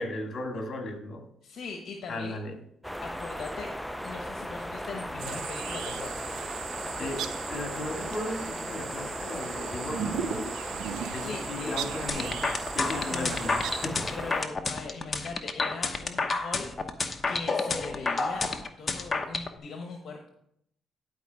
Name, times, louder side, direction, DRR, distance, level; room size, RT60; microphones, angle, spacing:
voice 1, 0.0-1.3 2.1-2.6 6.7-10.6 11.1-12.4 12.7-14.1, left 2 dB, 45° left, 3 dB, 2.2 m, -36 dB
voice 2, 1.4-2.4 3.0-3.7 4.0-6.1 11.1-11.8 12.9-13.4 14.1-16.7 17.3-18.5 18.8-20.3, left 4 dB, 65° left, 2 dB, 1.1 m, -40 dB
sound 1, 2.8-14.4, equal, ahead, 0.4 m, -37 dB
sound 2, 5.2-13.9, right 9 dB, 85° right, 0.5 m, -37 dB
sound 3, 12.1-19.5, left 3 dB, 30° left, 1.0 m, -29 dB
11.0 x 4.9 x 4.8 m, 0.73 s
cardioid pair, 90°, 0 cm